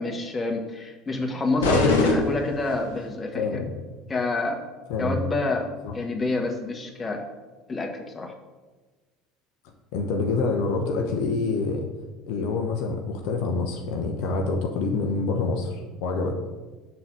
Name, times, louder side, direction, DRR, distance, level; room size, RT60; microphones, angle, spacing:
voice 1, 0.0-3.6 4.1-4.6 5.0-7.3 7.7-8.3, left 2 dB, 25° left, 2 dB, 1.5 m, -27 dB
sound 1, 1.6-3.1, left 3 dB, 85° left, 1.1 m, -24 dB
voice 2, 3.3-3.7 4.9-5.2 5.8-5.9 9.9-11.9 12.3-16.4, left 3 dB, 65° left, 2 dB, 0.8 m, -26 dB
7.0 x 4.0 x 6.2 m, 1.3 s
hypercardioid pair, 70°, 0 cm